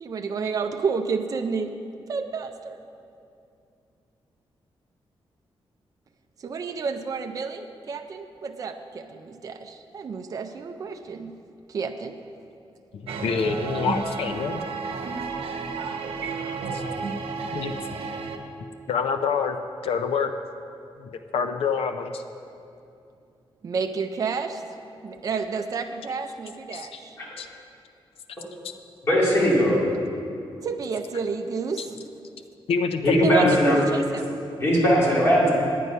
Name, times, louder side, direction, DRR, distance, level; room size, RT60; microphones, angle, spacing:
voice 1, 0.0-1.8 2.1-2.8 6.4-11.4 11.7-12.2 23.6-24.6 25.0-27.2 30.6-32.0 33.2-34.4, right 5 dB, 40° right, 5 dB, 0.4 m, -30 dB
voice 2, 12.9-14.6 16.7-16.8 17.5-17.7 18.9-19.6 19.8-20.3 21.0-22.2 26.7-27.0 27.4-27.5 31.8-31.9 32.7-33.6, left 6 dB, 85° left, 7 dB, 0.5 m, -26 dB
sound 1, 13.1-18.4, right 4 dB, 80° right, 0.8 m, -31 dB
voice 3, 29.0-29.8 33.0-33.8 34.6-35.5, equal, 25° left, -6 dB, 2.5 m, -19 dB
9.4 x 9.3 x 5.5 m, 2.6 s
wide cardioid pair, 175°, 10 cm